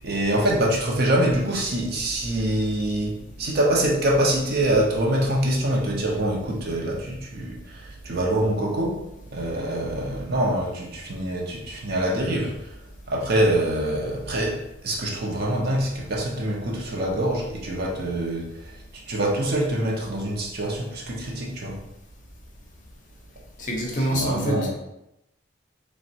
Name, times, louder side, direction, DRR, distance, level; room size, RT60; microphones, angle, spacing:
voice 1, 0.0-9.0 9.3-12.7 13.1-18.7 19.1-21.8 24.1-24.7, right 1 dB, 50° right, -2 dB, 0.5 m, -25 dB
voice 2, 23.6-24.7, right 1 dB, 40° left, -1 dB, 0.6 m, -25 dB
3.3 x 2.0 x 2.7 m, 0.86 s
head